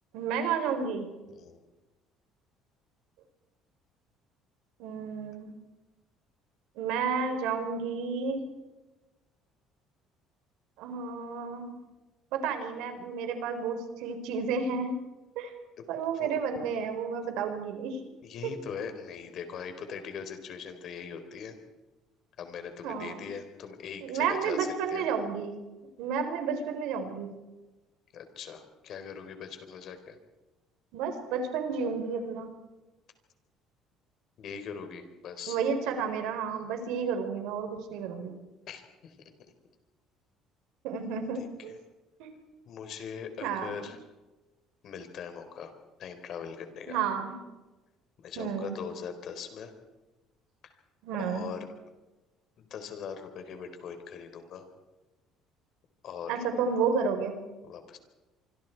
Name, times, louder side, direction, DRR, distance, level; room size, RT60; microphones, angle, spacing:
voice 1, 0.1-1.1 4.8-5.5 6.8-8.4 10.8-11.7 12.3-15.0 15.4-15.5 15.9-18.0 22.8-23.2 24.0-25.5 26.0-27.3 30.9-32.5 35.5-38.3 40.8-41.7 42.2-42.3 43.4-43.7 46.9-47.4 48.4-48.8 51.0-51.5 56.3-57.4, right 6 dB, 85° right, 6 dB, 4.4 m, -31 dB
voice 2, 1.3-1.6 15.8-15.9 16.1-16.3 18.2-21.6 22.4-25.1 28.1-30.2 34.4-35.6 38.7-39.2 42.7-44.0 44.8-45.7 46.0-47.0 48.2-49.7 50.6-50.7 51.2-51.6 52.6-54.7 56.0-56.4 57.6-58.0, left 7 dB, 55° left, 7 dB, 4.1 m, -41 dB
26.0 x 25.0 x 4.7 m, 1.1 s
cardioid pair, 130°, 0 cm